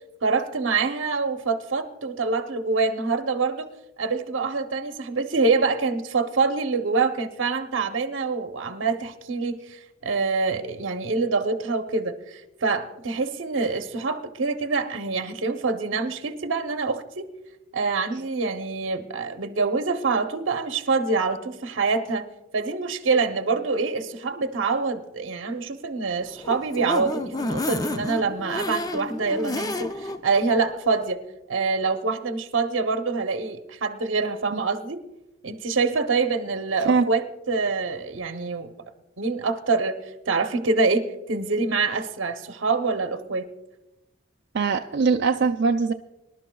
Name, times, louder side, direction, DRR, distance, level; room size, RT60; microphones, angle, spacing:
voice 1, 0.2-3.7 4.0-17.3 17.7-22.3 22.5-31.2 31.5-35.0 35.4-38.7 39.2-40.0 40.3-43.5, right 4 dB, 85° right, 6 dB, 0.8 m, -25 dB
sound 1, 26.2-30.2 30.6-30.7 31.0-31.1, left 2 dB, 20° left, 0.5 m, -30 dB
voice 2, 44.5-45.9, right 4 dB, 60° right, 3 dB, 0.4 m, -22 dB
25.5 x 11.5 x 2.3 m, 0.97 s
head